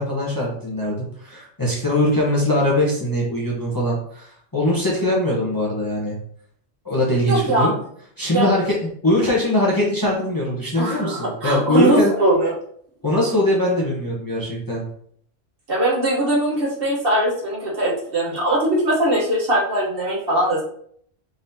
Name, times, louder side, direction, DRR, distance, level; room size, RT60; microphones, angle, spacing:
voice 1, 0.0-6.2 6.8-7.7 8.2-8.8 9.0-12.1 13.0-14.8, left 1 dB, 20° left, -5 dB, 1.0 m, -21 dB
voice 2, 7.3-7.7 8.3-8.5 10.8-12.5 15.7-20.6, right 1 dB, 50° right, -5 dB, 1.3 m, -21 dB
4.0 x 3.7 x 2.7 m, 0.63 s
omnidirectional pair, 1.2 m